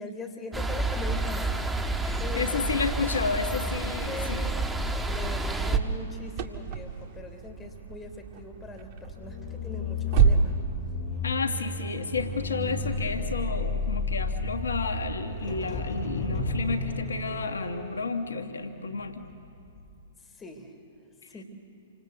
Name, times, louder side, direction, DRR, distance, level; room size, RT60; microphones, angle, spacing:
voice 1, 0.0-1.7 2.2-2.7 3.9-10.6 20.2-20.7 21.3-21.4, left 2 dB, 15° left, 5 dB, 3.2 m, -41 dB
sound 1, 0.5-5.8, right 2 dB, 5° right, 1.4 m, -29 dB
voice 2, 2.0-4.5 11.2-19.2, left 4 dB, 80° left, 7 dB, 1.5 m, -31 dB
sound 2, 5.7-16.4, right 6 dB, 45° right, 1.9 m, -31 dB
sound 3, 9.0-19.3 19.7-20.0, left 3 dB, 35° left, 4.9 m, -33 dB
28.0 x 25.5 x 8.1 m, 2.6 s
hypercardioid pair, 115°, 0 cm